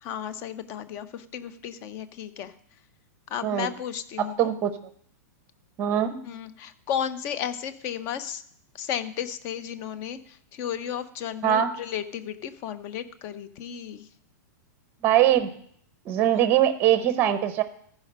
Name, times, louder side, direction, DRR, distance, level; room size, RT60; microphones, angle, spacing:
voice 1, 0.0-2.5 3.3-4.5 6.2-8.4 8.7-14.1 16.3-16.4, left 9 dB, 25° left, 13 dB, 0.5 m, -34 dB
voice 2, 4.4-4.7 5.8-6.2 11.4-11.7 15.0-15.5 16.1-17.6, right 11 dB, 20° right, 12 dB, 0.6 m, -21 dB
14.5 x 5.0 x 5.3 m, 0.65 s
supercardioid pair, 170°, 10 cm